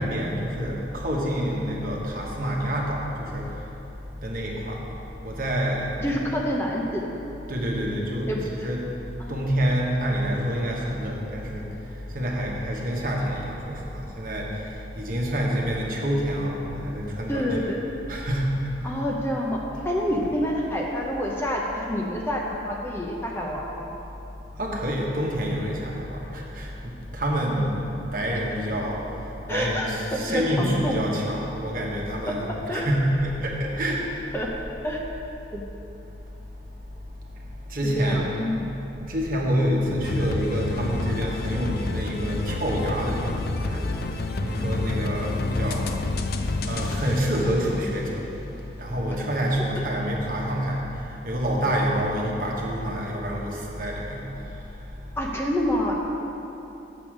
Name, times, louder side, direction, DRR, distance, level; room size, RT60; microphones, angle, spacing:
voice 1, 0.0-3.4 4.2-4.8 5.2-6.0 7.5-8.3 8.6-8.8 9.3-11.6 12.1-14.5 14.9-17.7 18.1-18.5 24.6-26.7 27.1-29.0 29.5-32.4 32.7-34.0 37.7-38.2 39.1-43.3 43.6-43.9 44.4-45.9 46.7-48.2 48.8-50.8 51.2-54.2, equal, 50° right, -2 dB, 1.2 m, -27 dB
voice 2, 6.0-7.1 8.3-8.4 9.2-9.4 17.3-17.8 18.8-19.6 19.8-23.9 29.5-31.0 32.2-32.3 32.7-32.8 34.3-34.5 34.8-35.0 35.5-35.6 38.0-38.7 55.2-55.9, equal, 15° left, -2 dB, 0.7 m, -27 dB
sound 1, 40.0-48.5, left 2 dB, 55° left, 0.5 m, -29 dB
7.0 x 6.8 x 6.1 m, 2.9 s
head